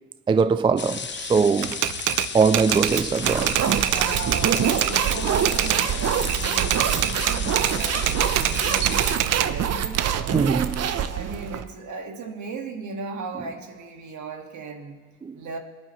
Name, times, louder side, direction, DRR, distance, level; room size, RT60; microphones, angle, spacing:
voice 1, 0.3-1.8 2.3-3.6 10.3-10.7 15.2-15.4, right 5 dB, 20° right, 0.3 m, -21 dB
sound 1, 0.8-9.2, left 6 dB, 35° left, 0.9 m, -34 dB
Typewriter, 1.6-5.9 6.2-9.5 10.0-11.6, right 13 dB, 90° right, 0.5 m, -25 dB
sound 2, 2.8-11.6, right 8 dB, 55° right, 0.8 m, -26 dB
voice 2, 3.8-10.8 11.1-15.0 15.3-15.6, right 4 dB, 70° right, 1.8 m, -37 dB
23.5 x 10.5 x 3.1 m
cardioid pair, 90°, 30 cm